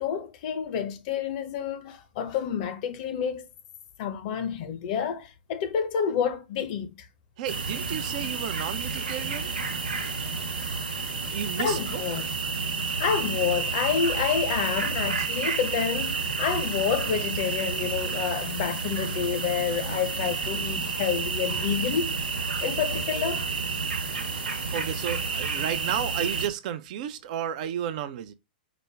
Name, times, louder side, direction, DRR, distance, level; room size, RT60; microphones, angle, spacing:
voice 1, 0.0-3.4 4.0-7.1 11.6-12.2 13.0-22.2 22.6-23.4, left 7 dB, 50° left, 0.8 m, -29 dB
voice 2, 7.4-9.5 11.3-12.2 24.7-28.3, right 10 dB, 50° right, 0.6 m, -32 dB
sound 1, 7.5-26.5, right 4 dB, 80° right, 1.1 m, -30 dB
5.0 x 2.2 x 3.3 m
hypercardioid pair, 110°, 5 cm